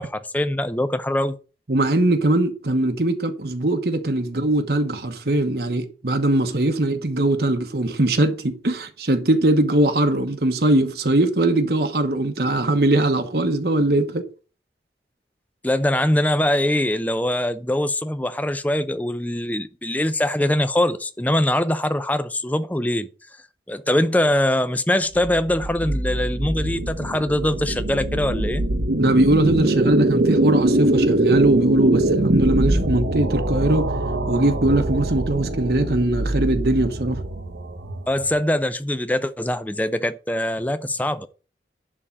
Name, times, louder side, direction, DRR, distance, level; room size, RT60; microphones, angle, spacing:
voice 1, 0.0-1.4 15.6-23.1 23.7-28.6 38.1-41.3, left 1 dB, 10° left, 0.5 m, -22 dB
voice 2, 1.7-14.3 29.0-33.9 34.3-37.2, right 1 dB, 60° right, 1.1 m, -21 dB
sound 1, 25.1-38.3, right 1 dB, 85° right, 1.2 m, -23 dB
11.0 x 3.8 x 7.3 m
head